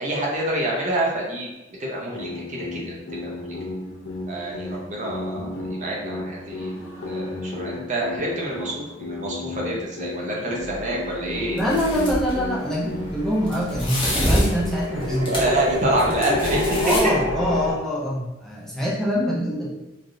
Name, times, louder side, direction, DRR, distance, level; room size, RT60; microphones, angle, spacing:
voice 1, 0.0-1.5 1.8-3.6 4.3-11.6 15.2-17.1, right 1 dB, 40° right, -2 dB, 0.6 m, -27 dB
sound 1, 2.1-13.1, left 2 dB, 80° left, 0.6 m, -34 dB
sound 2, 10.6-17.7, left 2 dB, 70° right, 1.5 m, -29 dB
sound 3, 11.6-12.3 13.4-15.6 15.9-17.0, equal, 25° left, 0.8 m, -25 dB
voice 2, 11.6-15.3 16.8-19.7, equal, ahead, -7 dB, 0.5 m, -24 dB
3.3 x 2.4 x 2.6 m, 1.0 s
head